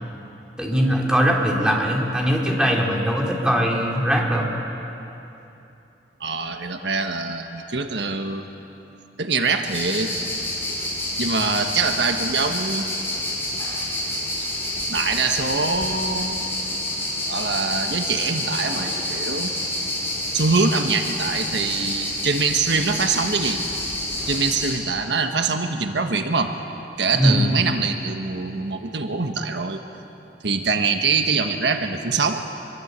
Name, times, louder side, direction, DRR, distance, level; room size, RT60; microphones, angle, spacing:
voice 1, 0.6-4.5 27.2-27.4, equal, 5° right, -2 dB, 3.7 m, -20 dB
voice 2, 6.2-8.4 9.2-10.3 11.2-12.9 14.4-14.5 14.9-16.4 17.3-19.5 20.3-23.6 24.2-26.5 27.0-29.8 30.4-32.4, right 4 dB, 80° right, 5 dB, 1.5 m, -24 dB
sound 1, 9.7-24.7, left 1 dB, 15° left, 6.6 m, -28 dB
25.5 x 23.5 x 8.2 m, 2.9 s
head